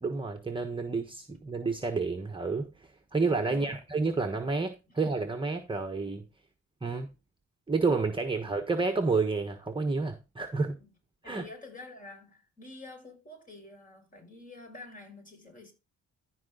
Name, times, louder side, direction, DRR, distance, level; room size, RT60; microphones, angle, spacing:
voice 1, 0.0-6.2 6.8-7.1 7.7-10.7 11.2-11.4, right 4 dB, 15° right, 1.3 m, -30 dB
voice 2, 3.5-3.8 10.6-10.9 11.2-15.7, left 2 dB, 25° left, 6.3 m, -48 dB
14.0 x 5.1 x 3.9 m
cardioid pair, 90°, 30 cm